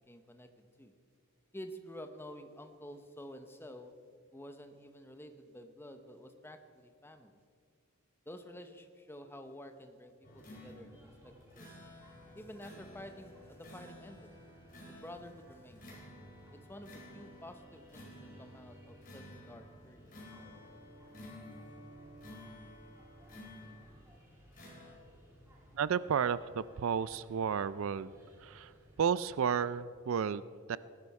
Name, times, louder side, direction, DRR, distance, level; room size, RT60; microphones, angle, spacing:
voice 1, 0.1-0.9 1.5-3.9 4.3-7.4 8.3-11.7 12.3-14.3 14.9-15.9 16.5-20.1, equal, 10° left, 8 dB, 0.8 m, -50 dB
sound 1, 10.2-24.1 24.5-24.9, left 1 dB, 40° left, 3.7 m, -53 dB
sound 2, 10.2-29.7, equal, 10° right, 2.6 m, -60 dB
voice 2, 25.7-28.1 28.4-28.7 29.0-30.8, right 7 dB, 65° right, 17 dB, 0.4 m, -32 dB
18.0 x 11.5 x 4.8 m, 2.2 s
head